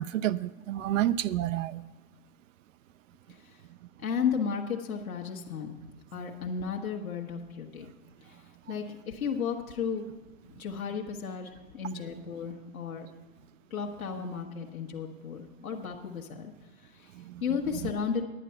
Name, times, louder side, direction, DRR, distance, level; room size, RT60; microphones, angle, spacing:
voice 1, 0.0-1.8 17.2-17.4 17.8-17.9, right 13 dB, 70° right, 0.5 m, -30 dB
voice 2, 4.0-7.9 8.2-10.1 10.5-13.1 13.7-16.5 16.8-17.1 17.4-18.2, left 6 dB, 90° left, 1.3 m, -34 dB
10.0 x 9.4 x 5.6 m
hypercardioid pair, 110°, 41 cm